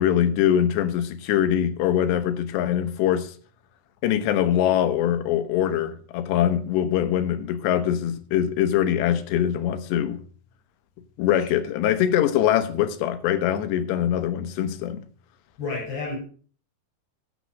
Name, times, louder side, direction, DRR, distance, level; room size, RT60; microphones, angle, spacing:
voice 1, 0.0-3.3 4.0-10.2 11.2-15.0, left 10 dB, 85° left, 3.2 m, -23 dB
voice 2, 11.4-11.7 15.6-16.2, left 3 dB, 70° left, 7.7 m, -32 dB
12.5 x 8.3 x 6.4 m
omnidirectional pair, 4.9 m